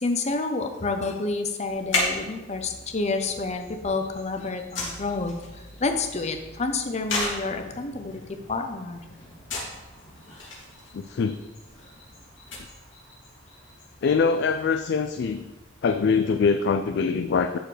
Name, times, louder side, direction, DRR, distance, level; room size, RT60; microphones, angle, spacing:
voice 1, 0.0-5.4 5.8-9.0, left 3 dB, 35° left, 6 dB, 0.7 m, -29 dB
sound 1, 1.6-16.7, left 2 dB, 80° left, 2.5 m, -37 dB
voice 2, 10.9-11.4 14.0-15.4 15.8-17.6, left 5 dB, 60° left, 7 dB, 0.3 m, -23 dB
12.0 x 4.5 x 3.3 m, 1.1 s
head